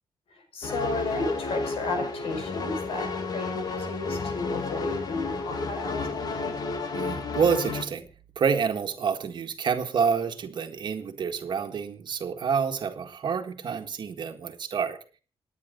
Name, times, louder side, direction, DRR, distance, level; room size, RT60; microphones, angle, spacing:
voice 1, 0.3-6.6, left 3 dB, 75° left, 6 dB, 5.5 m, -33 dB
sound 1, 0.6-7.8, left 3 dB, 45° left, 2.2 m, -31 dB
voice 2, 6.9-8.1 8.4-15.0, right 6 dB, 50° right, 5 dB, 1.8 m, -28 dB
28.0 x 9.8 x 3.9 m, 0.37 s
wide cardioid pair, 170°, 10 cm